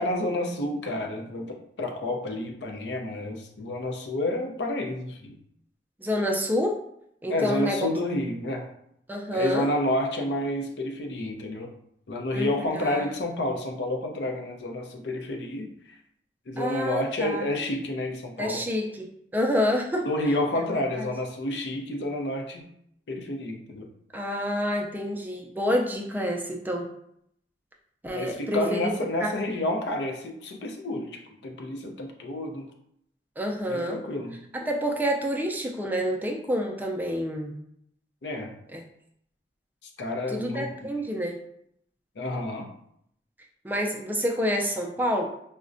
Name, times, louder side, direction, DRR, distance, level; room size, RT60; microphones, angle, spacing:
voice 1, 0.0-5.3 7.3-8.7 9.3-11.7 12.1-15.7 16.5-18.6 20.0-22.7 23.1-23.9 28.1-32.7 33.7-34.4 38.2-38.5 40.0-40.9 42.2-42.7, left 1 dB, 70° left, 2 dB, 0.5 m, -30 dB
voice 2, 6.0-6.8 7.2-7.8 9.1-9.7 12.3-12.5 12.7-13.0 16.6-17.5 18.4-20.1 21.0-21.1 24.1-26.9 28.0-28.9 29.2-29.3 33.4-34.0 34.5-37.5 38.7-38.8 40.3-41.4 43.6-45.2, equal, 10° right, 1 dB, 0.3 m, -28 dB
4.9 x 2.1 x 2.5 m, 0.73 s
head